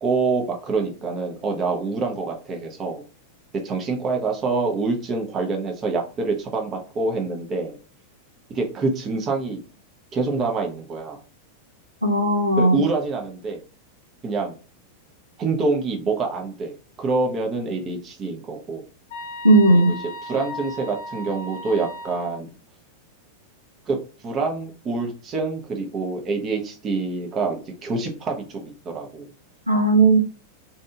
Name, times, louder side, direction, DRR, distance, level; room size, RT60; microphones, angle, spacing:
voice 1, 0.0-3.0 3.6-7.8 8.5-9.6 10.1-11.2 12.6-13.6 14.2-14.5 15.4-18.8 19.7-19.9 20.2-22.5 23.9-24.0 24.2-29.3, right 3 dB, 30° right, 2 dB, 0.7 m, -26 dB
voice 2, 12.0-12.8 19.4-20.0 29.7-30.2, right 2 dB, 85° right, 2 dB, 0.5 m, -16 dB
sound 1, 19.1-22.4, left 1 dB, 50° left, 0.8 m, -36 dB
2.8 x 2.5 x 2.4 m, 0.36 s
figure-of-eight pair, 90°, 0 cm